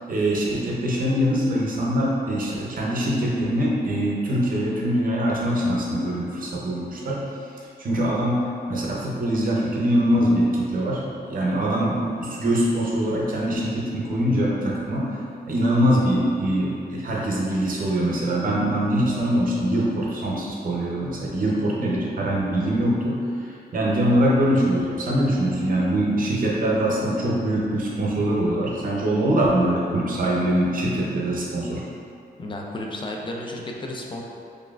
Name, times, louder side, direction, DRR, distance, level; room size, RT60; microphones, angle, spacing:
voice 1, 0.1-7.3 7.8-15.1 15.5-31.8, right 1 dB, 55° right, -4 dB, 0.6 m, -23 dB
voice 2, 32.4-34.2, left 1 dB, 30° left, 0 dB, 0.3 m, -32 dB
4.0 x 3.3 x 2.4 m, 2.5 s
wide cardioid pair, 180°, 17 cm